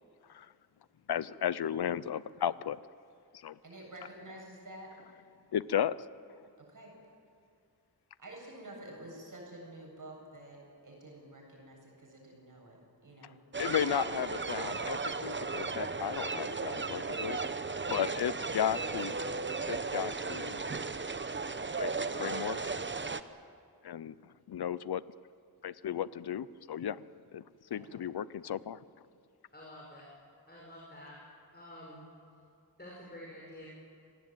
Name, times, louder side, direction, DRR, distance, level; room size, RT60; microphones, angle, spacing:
voice 1, 1.1-2.8 3.3-3.6 5.5-6.0 13.6-17.4 17.9-19.2 19.7-20.6 21.8-22.8 23.8-25.0 25.6-27.0 27.3-27.4 27.7-28.8, left 9 dB, 75° left, 17 dB, 0.7 m, -34 dB
voice 2, 3.6-4.9 6.6-6.9 8.2-13.4 18.0-18.1 27.7-28.0, right 1 dB, 50° right, 0 dB, 7.8 m, -49 dB
sound 1, 13.5-23.2, right 4 dB, 30° right, 0.9 m, -35 dB
voice 3, 29.5-30.1 30.5-31.2 31.5-32.1 32.8-33.7, left 1 dB, 25° left, -3 dB, 5.7 m, -49 dB
26.5 x 18.5 x 9.0 m, 2.4 s
wide cardioid pair, 95°, 39 cm